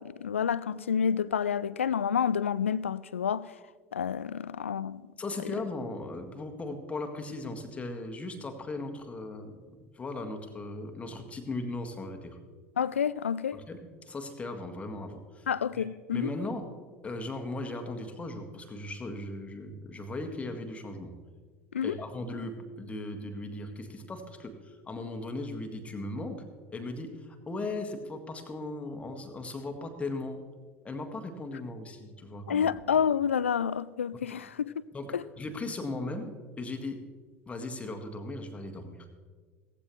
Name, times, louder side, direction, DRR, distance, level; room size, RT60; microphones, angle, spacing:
voice 1, 0.0-3.5 3.9-5.0 12.8-13.6 15.5-16.3 21.7-22.0 32.5-34.7 35.1-35.2, left 7 dB, 75° left, 0.4 m, -29 dB
voice 2, 5.2-12.4 13.5-15.5 15.7-16.7 17.0-21.1 21.8-26.4 26.7-30.4 30.8-32.8 34.3-34.4 34.9-37.1 37.5-39.1, left 2 dB, 20° left, 1.7 m, -38 dB
17.5 x 15.5 x 3.2 m
figure-of-eight pair, 75°, 7 cm